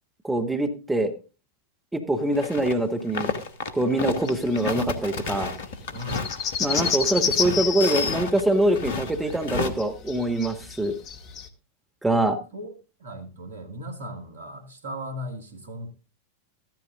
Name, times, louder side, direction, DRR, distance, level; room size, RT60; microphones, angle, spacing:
voice 1, 0.2-1.1 1.9-3.3 3.7-5.5 6.6-10.9 12.0-12.4, right 1 dB, 5° right, 1.5 m, -24 dB
sound 1, 2.3-2.7 3.0-9.7, left 4 dB, 60° left, 1.4 m, -32 dB
sound 2, 4.2-4.7 5.0-5.1 5.3-5.4 5.7-11.5, left 6 dB, 35° left, 1.2 m, -29 dB
voice 2, 5.9-6.3 12.5-12.7 13.0-15.9, equal, 70° right, 2.1 m, -37 dB
14.0 x 13.5 x 2.5 m
figure-of-eight pair, 90°, 0 cm